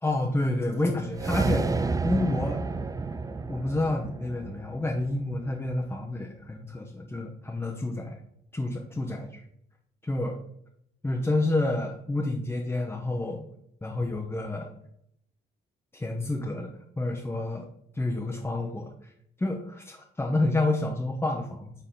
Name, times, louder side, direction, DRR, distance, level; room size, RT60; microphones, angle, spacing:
voice 1, 0.0-1.7 2.0-2.6 3.5-8.2 8.5-9.4 10.0-10.4 11.0-13.5 13.8-14.7 15.9-17.7 17.9-18.9 19.4-21.7, left 2 dB, 10° left, 1 dB, 0.8 m, -29 dB
sound 1, 1.1-5.5, right 3 dB, 15° right, 0.4 m, -30 dB
6.7 x 3.8 x 3.7 m, 0.73 s
cardioid pair, 90°, 20 cm